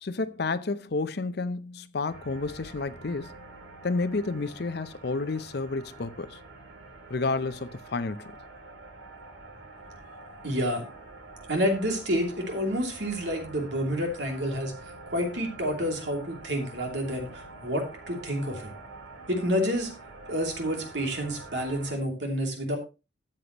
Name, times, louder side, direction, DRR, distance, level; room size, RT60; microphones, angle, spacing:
voice 1, 0.0-3.3 3.8-6.4 7.1-8.4, left 3 dB, 60° left, 0.6 m, -30 dB
sound 1, 2.1-22.0, right 2 dB, 85° right, 2.2 m, -46 dB
voice 2, 10.4-10.8 11.5-14.7 15.1-18.7 19.3-19.9 20.3-22.8, equal, 70° right, 2.8 m, -29 dB
13.0 x 8.1 x 3.0 m
head